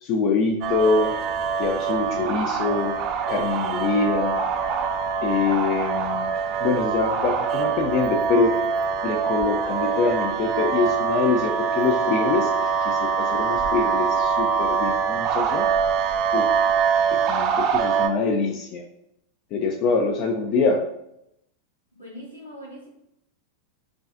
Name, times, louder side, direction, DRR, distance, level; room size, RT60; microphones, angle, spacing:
voice 1, 0.0-1.1 1.6-3.0 3.3-4.4 5.2-6.3 6.6-8.6 9.0-12.5 12.8-15.7 16.3-16.5 17.1-18.9 19.5-20.8, left 4 dB, 40° left, 2 dB, 0.3 m, -24 dB
sound 1, 0.6-18.1, right 6 dB, 40° right, 0.3 m, -24 dB
voice 2, 21.9-22.9, equal, 80° left, -6 dB, 1.5 m, -41 dB
4.8 x 2.3 x 2.4 m, 0.80 s
figure-of-eight pair, 90°, 0 cm